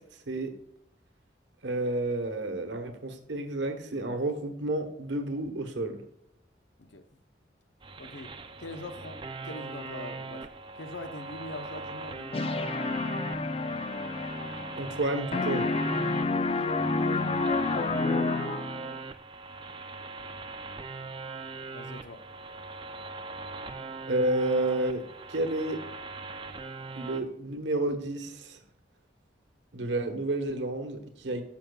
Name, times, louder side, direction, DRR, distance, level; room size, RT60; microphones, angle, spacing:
voice 1, 1.6-6.0 14.8-15.7 24.1-25.0 25.3-25.8 26.9-28.6 29.7-31.4, right 2 dB, 80° right, 1.2 m, -30 dB
sound 1, 7.8-27.2, right 3 dB, 25° right, 0.5 m, -40 dB
voice 2, 8.0-10.5 10.8-12.8 16.7-17.5 21.7-22.2, left 2 dB, 75° left, 0.8 m, -43 dB
sound 2, 12.3-15.1 15.3-18.9, left 3 dB, 30° left, 0.3 m, -29 dB
10.5 x 7.1 x 2.3 m
head